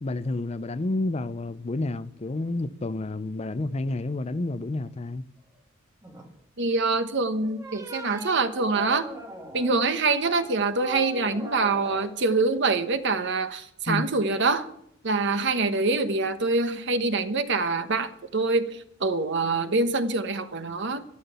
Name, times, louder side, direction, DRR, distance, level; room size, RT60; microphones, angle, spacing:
voice 1, 0.0-5.2 13.9-14.1, left 2 dB, 30° left, 0.5 m, -30 dB
sound 1, 6.0-6.3 7.4-9.8 10.2-12.1, right 1 dB, 15° right, 1.7 m, -40 dB
voice 2, 6.6-9.1 9.5-14.7 15.0-21.0, right 3 dB, 60° right, 1.1 m, -25 dB
13.0 x 12.0 x 6.8 m
head